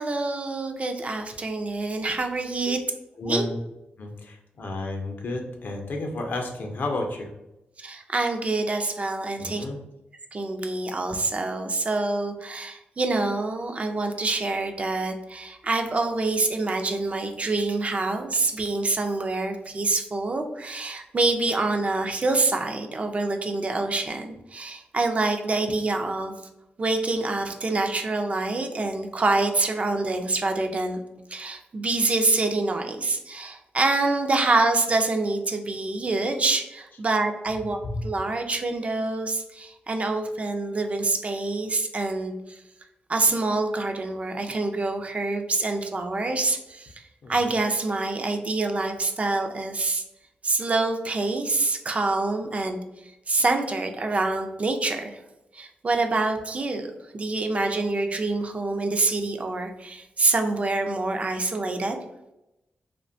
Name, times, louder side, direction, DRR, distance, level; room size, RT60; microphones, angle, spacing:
voice 1, 0.0-2.8 3.3-3.4 7.8-9.6 10.3-26.3 26.8-31.0 31.3-42.6 43.1-47.0 47.3-50.0 50.4-55.2 55.5-56.9 57.1-62.0, right 3 dB, 35° right, 5 dB, 0.3 m, -26 dB
voice 2, 3.2-3.6 4.0-7.3 9.4-9.8 37.8-38.0 47.2-47.3, left 2 dB, 60° left, 3 dB, 0.5 m, -31 dB
2.7 x 2.1 x 2.5 m, 0.91 s
cardioid pair, 85°, 4 cm